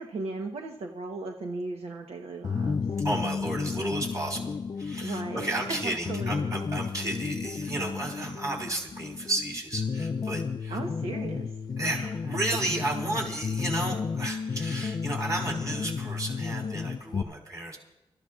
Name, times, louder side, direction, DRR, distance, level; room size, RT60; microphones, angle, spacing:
voice 1, 0.0-2.8 5.0-5.5 5.8-6.5 10.7-11.5 11.8-12.1, right 3 dB, 80° right, 2 dB, 1.0 m, -37 dB
sound 1, 2.4-17.2, left 5 dB, 40° left, 0.4 m, -32 dB
voice 2, 3.0-10.8 11.8-17.8, right 2 dB, 35° right, 0 dB, 4.1 m, -33 dB
25.0 x 14.0 x 2.5 m, 0.94 s
wide cardioid pair, 90°, 10 cm